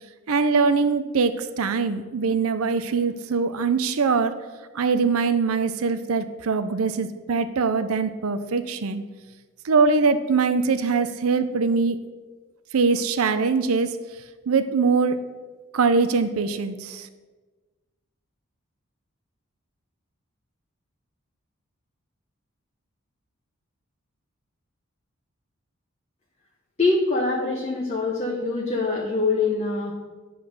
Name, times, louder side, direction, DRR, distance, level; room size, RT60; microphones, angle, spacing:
voice 1, 0.3-4.3 4.7-9.0 9.6-12.0 12.7-14.0 14.5-15.2 15.7-17.1, right 4 dB, 75° right, 10 dB, 0.5 m, -22 dB
voice 2, 26.8-29.9, left 3 dB, 30° left, -2 dB, 1.0 m, -24 dB
10.5 x 3.9 x 6.4 m, 1.3 s
head